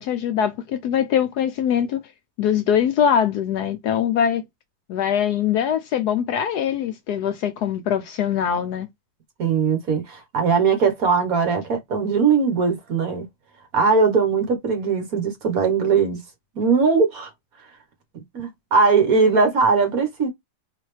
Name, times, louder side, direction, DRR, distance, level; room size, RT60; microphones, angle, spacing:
voice 1, 0.0-2.0 2.4-4.4 4.9-8.9, left 8 dB, 70° left, 1.0 m, -22 dB
voice 2, 9.4-13.3 13.7-16.2 16.5-17.3 18.1-20.3, right 5 dB, 55° right, 1.5 m, -20 dB
4.1 x 2.9 x 3.2 m
omnidirectional pair, 2.0 m